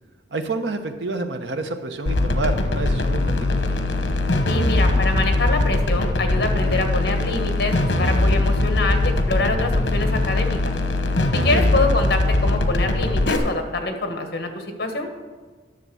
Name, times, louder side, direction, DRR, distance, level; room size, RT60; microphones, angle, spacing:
voice 1, 0.3-3.4 11.3-11.6, right 3 dB, 70° right, 7 dB, 0.9 m, -28 dB
sound 1, 2.1-13.4, left 2 dB, 85° left, 1.0 m, -21 dB
voice 2, 4.5-10.6 11.4-15.1, left 2 dB, 60° left, 5 dB, 1.4 m, -25 dB
10.5 x 6.8 x 6.2 m, 1.4 s
head